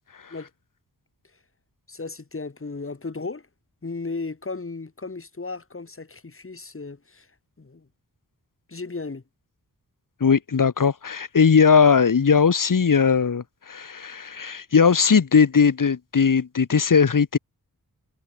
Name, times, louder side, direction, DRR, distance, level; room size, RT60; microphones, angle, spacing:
voice 1, 1.9-3.5 3.8-7.3 7.6-7.9 8.7-9.2, left 3 dB, 40° left, 6.9 m, -35 dB
voice 2, 10.2-17.4, left 6 dB, 65° left, 3.5 m, -19 dB
wide cardioid pair, 100°, 35 cm